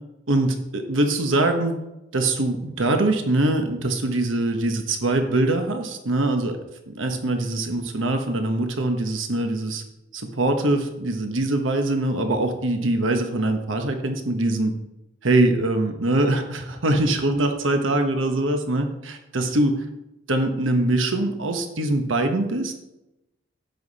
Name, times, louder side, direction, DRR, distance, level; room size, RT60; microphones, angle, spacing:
voice 1, 0.3-1.8 2.1-6.6 6.9-9.8 10.1-14.7 15.2-19.8 20.3-22.7, right 2 dB, 80° right, 5 dB, 1.2 m, -23 dB
10.5 x 8.2 x 4.2 m, 0.91 s
head